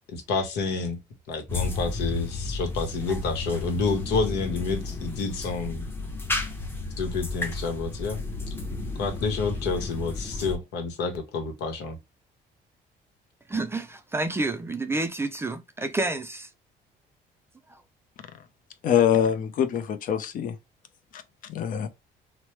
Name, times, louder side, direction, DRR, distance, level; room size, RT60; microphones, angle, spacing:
voice 1, 0.1-1.0 1.3-5.9 7.0-8.2 9.0-12.0, left 4 dB, 80° left, 0.9 m, -29 dB
sound 1, 1.5-10.6, left 3 dB, 15° left, 0.7 m, -32 dB
voice 2, 13.5-16.5 17.7-17.8, right 2 dB, 15° right, 0.3 m, -29 dB
voice 3, 18.8-20.5 21.1-21.2 21.5-21.9, left 9 dB, 55° left, 0.6 m, -24 dB
3.0 x 2.0 x 3.0 m
cardioid pair, 110°, 17 cm